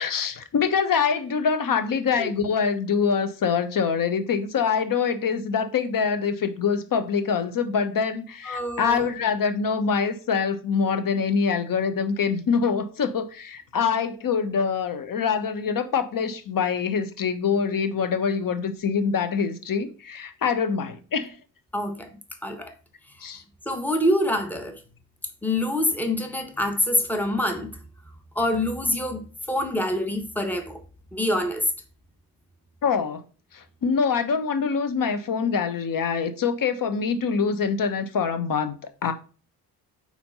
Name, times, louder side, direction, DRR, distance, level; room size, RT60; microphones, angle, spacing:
voice 1, 0.0-21.4 23.2-23.4 32.8-33.2 33.5-39.1, left 6 dB, 50° left, 1.0 m, -25 dB
voice 2, 8.5-9.0 21.7-22.1 22.4-22.7 23.7-24.8 25.4-27.8 28.3-30.8 31.1-31.7, left 1 dB, 5° left, 1.3 m, -25 dB
4.4 x 4.3 x 5.4 m
hypercardioid pair, 45°, 43 cm